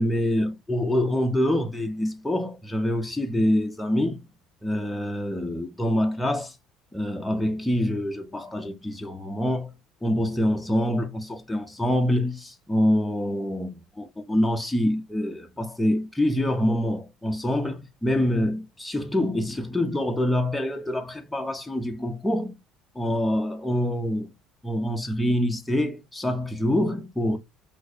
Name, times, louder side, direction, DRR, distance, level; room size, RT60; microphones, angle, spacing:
voice 1, 0.0-4.2 4.6-6.6 6.9-9.7 10.0-22.6 23.0-24.3 24.6-27.4, left 1 dB, 5° left, 0.4 m, -25 dB
2.5 x 2.4 x 4.0 m
cardioid pair, 175°, 0 cm